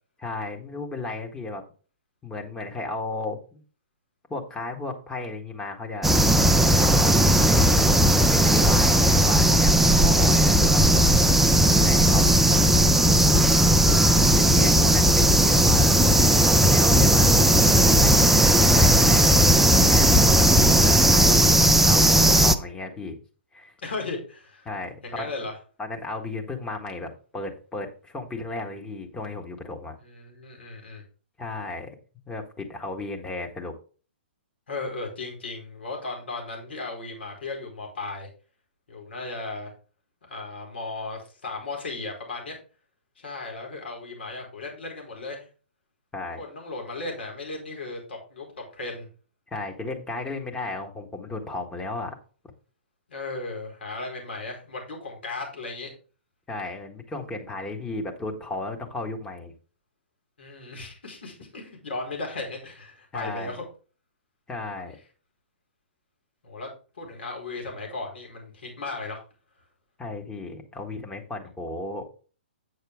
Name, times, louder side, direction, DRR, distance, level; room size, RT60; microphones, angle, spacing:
voice 1, 0.2-1.6 2.2-3.6 4.3-6.2 6.7-10.8 11.7-12.6 14.3-19.4 19.9-23.2 23.5-23.7 24.6-25.3 25.8-29.9 31.4-31.9 32.3-33.7 46.1-46.4 49.5-52.1 56.5-59.5 63.1-63.6 64.5-64.9 70.0-72.1, left 2 dB, 10° left, 2 dB, 1.5 m, -34 dB
sound 1, 6.0-22.5, right 1 dB, 5° right, 0.4 m, -17 dB
voice 2, 13.9-14.4 23.8-24.7 25.0-25.6 30.0-31.0 34.7-38.3 38.9-39.7 40.3-42.6 43.2-45.5 46.4-49.1 53.1-55.9 60.4-63.6 66.4-69.2, left 3 dB, 70° left, 0 dB, 4.7 m, -36 dB
9.2 x 6.5 x 3.6 m, 0.37 s
figure-of-eight pair, 125°, 6 cm